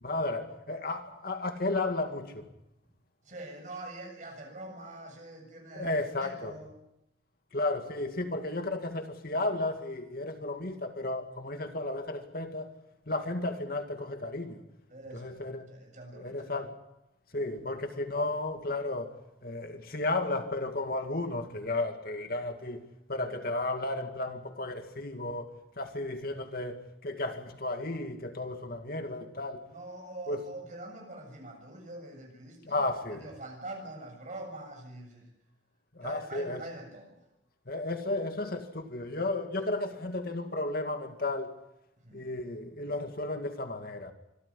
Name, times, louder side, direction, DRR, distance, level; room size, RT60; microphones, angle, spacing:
voice 1, 0.0-2.5 5.7-6.5 7.5-12.7 13.1-14.6 15.1-15.7 16.1-16.8 17.3-19.1 19.4-22.8 23.1-29.6 30.3-30.4 32.6-33.3 35.9-36.6 37.7-41.5 42.1-44.1, left 2 dB, 55° left, 2.2 m, -33 dB
voice 2, 3.2-6.7 13.3-13.4 14.9-16.5 17.3-17.4 23.2-23.3 29.7-35.3 36.0-37.2 39.6-39.7 42.0-42.3, right 2 dB, 45° right, 7.5 m, -44 dB
25.0 x 13.5 x 9.9 m
head